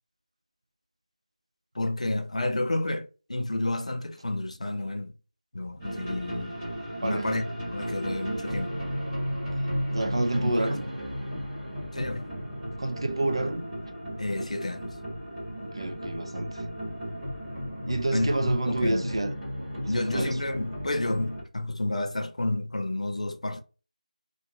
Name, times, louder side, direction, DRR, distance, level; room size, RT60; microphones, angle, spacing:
voice 1, 1.7-5.1 5.5-6.6 7.0-8.7 10.4-10.8 11.9-12.2 14.2-15.0 18.1-19.1 19.9-23.6, left 2 dB, 55° left, 0.5 m, -30 dB
sound 1, 5.8-21.4, equal, 5° right, 0.7 m, -34 dB
voice 2, 7.0-7.4 8.3-8.5 9.9-10.9 12.8-13.6 15.6-16.6 17.9-19.3 19.7-20.4, right 2 dB, 40° right, 0.3 m, -29 dB
2.3 x 2.3 x 2.9 m
figure-of-eight pair, 175°, 4 cm